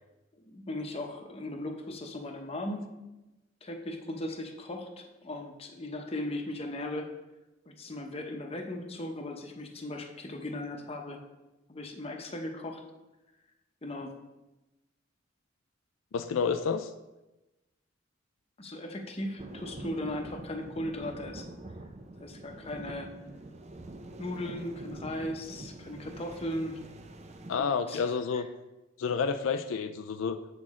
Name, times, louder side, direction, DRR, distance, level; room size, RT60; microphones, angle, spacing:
voice 1, 0.5-2.9 3.6-7.1 7.7-11.2 11.7-12.8 13.8-14.1 18.6-21.5 22.2-23.1 24.2-26.8 27.5-28.4, left 1 dB, 30° left, 3 dB, 0.8 m, -37 dB
voice 2, 16.1-16.9 27.5-28.5 29.0-30.4, left 5 dB, 85° left, 9 dB, 0.4 m, -29 dB
sound 1, 19.4-27.6, right 2 dB, 35° right, 0.5 m, -45 dB
7.6 x 6.2 x 3.6 m, 1.0 s
head